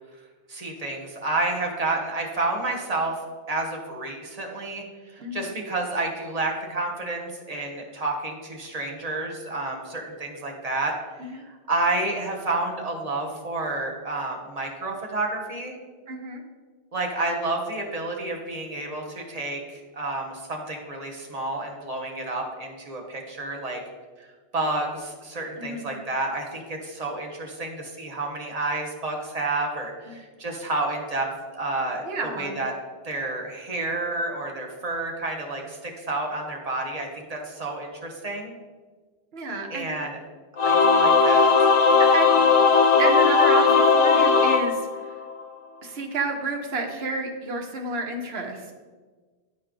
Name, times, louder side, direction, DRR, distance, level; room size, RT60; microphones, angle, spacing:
voice 1, 0.5-3.2 3.5-4.8 5.1-10.9 11.2-15.7 16.9-23.8 24.2-24.3 24.5-31.3 31.5-32.7 33.0-38.5 39.7-40.2 40.6-41.7, right 2 dB, 40° right, 1 dB, 1.1 m, -30 dB
voice 2, 5.2-5.6 11.2-11.4 16.1-16.4 25.6-25.9 32.0-32.5 39.3-39.9 42.0-42.3 43.0-45.1 45.8-48.7, right 3 dB, 75° right, 3 dB, 1.2 m, -30 dB
Singing / Musical instrument, 40.6-45.4, left 4 dB, 50° left, 0.4 m, -18 dB
10.5 x 4.3 x 3.7 m, 1.4 s
omnidirectional pair, 1.0 m